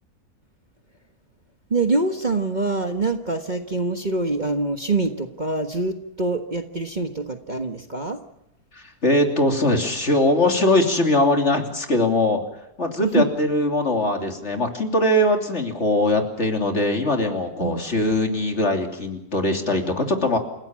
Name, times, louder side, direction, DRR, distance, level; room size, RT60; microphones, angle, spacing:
voice 1, 1.7-8.2 13.0-13.3 17.6-17.8, right 3 dB, 30° right, 5 dB, 1.4 m, -25 dB
voice 2, 9.0-12.4 12.8-20.4, left 1 dB, 45° left, 4 dB, 3.3 m, -21 dB
29.0 x 16.5 x 7.6 m, 0.85 s
omnidirectional pair, 1.6 m